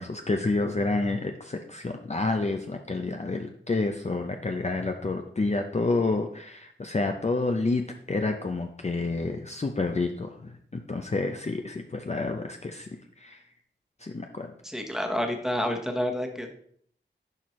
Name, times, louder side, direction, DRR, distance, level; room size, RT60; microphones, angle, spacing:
voice 1, 0.0-12.9 13.2-13.4 14.0-14.5, left 3 dB, 35° left, 4 dB, 0.5 m, -29 dB
voice 2, 14.6-16.5, left 1 dB, ahead, 3 dB, 1.1 m, -29 dB
10.5 x 4.4 x 3.1 m, 0.63 s
wide cardioid pair, 65°, 20 cm